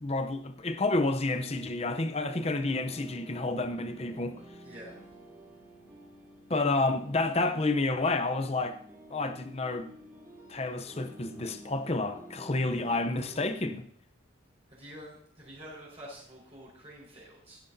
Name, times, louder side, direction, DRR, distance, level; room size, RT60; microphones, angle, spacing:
voice 1, 0.0-4.4 6.5-8.8 9.1-9.9 10.5-13.8, left 2 dB, 30° left, 0.6 m, -30 dB
sound 1, 1.3-13.6, equal, 15° right, 3.9 m, -51 dB
voice 2, 4.6-5.0 14.7-17.6, equal, 30° right, 4.1 m, -48 dB
15.5 x 10.5 x 2.7 m
head